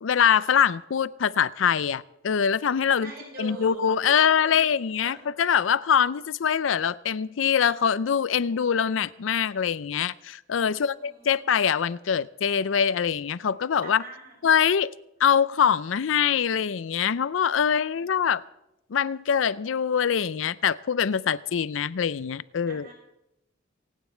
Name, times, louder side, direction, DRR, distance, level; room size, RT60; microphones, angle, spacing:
voice 1, 0.0-3.1 3.4-14.0 14.4-14.9 15.2-18.4 18.9-22.9, left 7 dB, 85° left, 0.5 m, -24 dB
voice 2, 2.8-4.5 5.0-5.1 10.6-11.4 13.8-14.4 17.9-18.3 22.7-22.9, right 1 dB, 50° right, 6.8 m, -43 dB
26.0 x 9.3 x 4.4 m
head